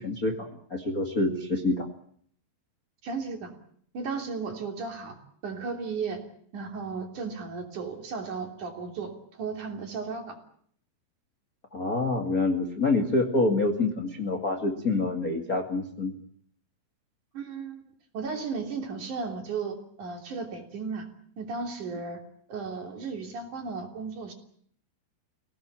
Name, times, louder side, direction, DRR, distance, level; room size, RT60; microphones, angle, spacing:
voice 1, 0.0-1.9 11.7-16.1, left 2 dB, 80° left, 3 dB, 0.8 m, -27 dB
voice 2, 3.0-3.5 3.9-5.2 5.4-6.2 6.5-10.4 17.3-17.8 18.1-21.1 21.4-22.2 22.5-24.3, right 5 dB, 45° right, 4 dB, 4.0 m, -35 dB
26.0 x 17.5 x 8.9 m, 0.63 s
omnidirectional pair, 5.8 m